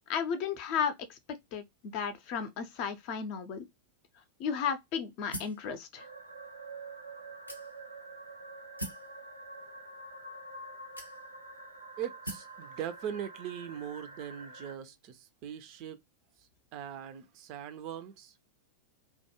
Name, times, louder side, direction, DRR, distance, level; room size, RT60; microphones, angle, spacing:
voice 1, 0.1-1.2 1.5-3.7 4.4-6.1, left 7 dB, 45° left, 0.5 m, -34 dB
sound 1, 5.3-5.7 6.4-6.5 7.5-8.0 8.8-9.1 10.1-10.2 11.0-11.5 12.2-12.6, right 1 dB, 90° left, 0.6 m, -41 dB
sound 2, 6.0-14.8, right 2 dB, 85° right, 0.6 m, -47 dB
voice 2, 12.0-16.0 16.7-18.3, right 9 dB, 40° right, 0.4 m, -40 dB
2.2 x 2.1 x 2.9 m
figure-of-eight pair, 90°, 0 cm